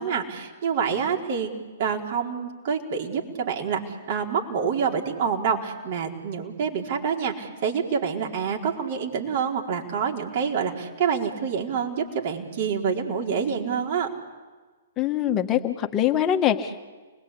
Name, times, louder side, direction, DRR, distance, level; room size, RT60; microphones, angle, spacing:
voice 1, 0.0-1.5 1.8-3.8 4.1-14.1, right 6 dB, 50° right, 1 dB, 4.4 m, -27 dB
voice 2, 15.0-16.8, left 10 dB, 25° left, 5 dB, 1.8 m, -23 dB
29.5 x 21.5 x 8.6 m, 1.4 s
hypercardioid pair, 125°, 0 cm